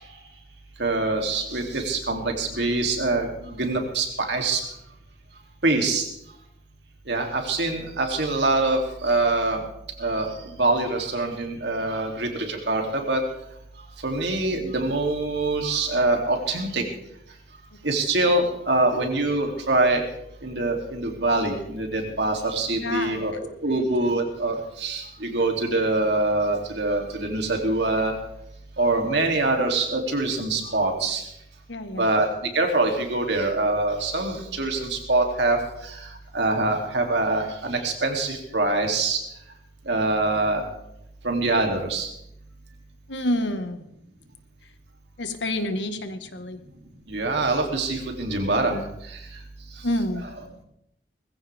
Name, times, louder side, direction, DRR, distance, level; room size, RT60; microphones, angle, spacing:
voice 1, 0.8-4.6 5.6-6.1 7.1-9.6 10.0-13.2 14.0-16.8 17.8-20.0 20.4-28.1 28.8-31.2 31.9-32.3 32.5-36.0 36.3-39.2 39.9-40.6 41.2-42.1 47.1-48.8, right 2 dB, 75° right, 2 dB, 3.0 m, -24 dB
voice 2, 22.8-23.4 23.7-23.9 31.7-32.1 43.1-43.8 45.2-46.6 49.8-50.2, left 1 dB, 85° left, 8 dB, 1.6 m, -28 dB
20.5 x 15.5 x 3.6 m, 0.78 s
head